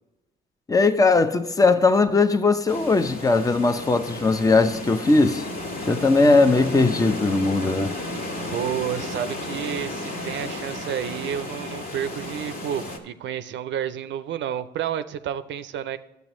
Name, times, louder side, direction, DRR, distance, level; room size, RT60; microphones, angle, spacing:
voice 1, 0.7-5.5 5.8-8.0, left 3 dB, 15° left, 0.7 m, -19 dB
sound 1, 2.7-13.0, left 2 dB, 50° left, 1.8 m, -33 dB
voice 2, 8.5-16.0, right 9 dB, 70° right, 0.5 m, -30 dB
11.0 x 8.0 x 3.1 m
cardioid pair, 90°, 20 cm